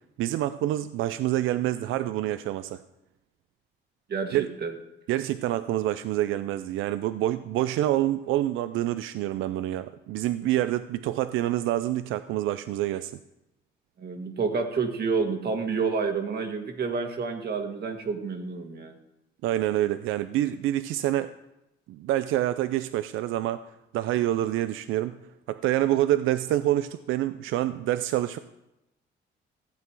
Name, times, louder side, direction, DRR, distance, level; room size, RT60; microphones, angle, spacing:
voice 1, 0.2-2.8 4.3-4.5 5.1-13.1 19.4-21.3 21.9-23.6 23.9-25.2 25.5-28.4, right 13 dB, 90° right, 13 dB, 0.4 m, -27 dB
voice 2, 4.1-4.7 14.0-18.9, right 5 dB, 55° right, 5 dB, 1.8 m, -29 dB
15.0 x 8.2 x 4.7 m, 0.90 s
cardioid pair, 90°, 20 cm